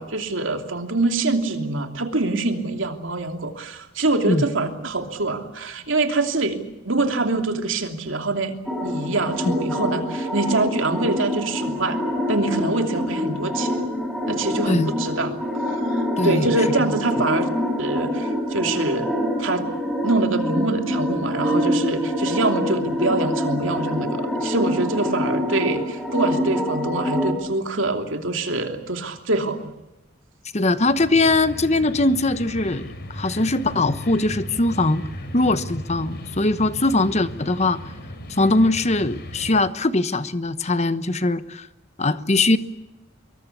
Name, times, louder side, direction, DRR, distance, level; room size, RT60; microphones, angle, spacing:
voice 1, 0.0-6.6 6.8-12.0 12.3-13.9 14.3-15.4 15.7-17.5 17.8-19.1 19.4-19.7 20.0-29.7, right 2 dB, 70° right, 5 dB, 3.0 m, -25 dB
sound 1, 8.7-27.3, equal, ahead, 4.8 m, -25 dB
voice 2, 16.2-16.5 30.5-35.0 35.3-37.8 38.4-41.7 42.0-42.6, left 2 dB, 35° left, 13 dB, 1.0 m, -21 dB
sound 2, 30.8-39.6, equal, 50° left, 4.3 m, -36 dB
24.5 x 23.0 x 8.5 m, 0.96 s
head